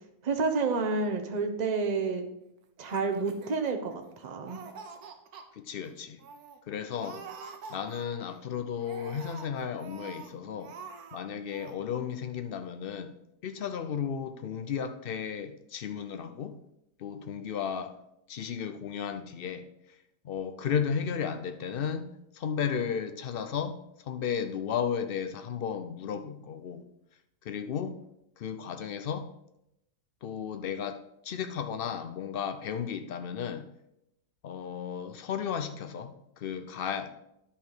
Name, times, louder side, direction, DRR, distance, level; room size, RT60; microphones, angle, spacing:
voice 1, 0.2-2.2 2.8-4.6, right 4 dB, 35° right, 5 dB, 0.8 m, -29 dB
Laughter, 2.8-4.1 4.4-5.4 5.8-5.9 6.2-6.6 7.0-8.3 8.8-10.3 10.6-11.2 11.5-11.8, right 5 dB, 75° right, 1.4 m, -46 dB
voice 2, 5.5-6.2 6.7-7.2 7.7-10.7 11.1-13.1 13.4-16.6 17.0-18.0 18.3-19.7 20.2-26.8 27.4-28.0 28.4-29.3 30.2-33.7 34.4-37.1, left 7 dB, 85° left, 9 dB, 0.5 m, -34 dB
10.5 x 5.6 x 4.8 m, 0.83 s
omnidirectional pair, 1.7 m